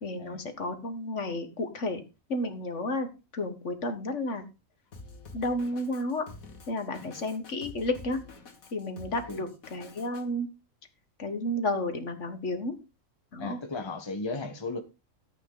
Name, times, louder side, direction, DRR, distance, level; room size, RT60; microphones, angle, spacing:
voice 1, 0.0-2.0 2.3-4.4 5.3-6.2 6.7-8.2 8.7-10.5 11.2-12.7 13.3-13.6, left 1 dB, 60° left, 1.8 m, -32 dB
Drum kit, 4.9-10.2, left 3 dB, 90° left, 2.1 m, -48 dB
voice 2, 13.4-14.8, left 3 dB, 20° left, 1.2 m, -35 dB
13.5 x 8.5 x 3.9 m
omnidirectional pair, 1.4 m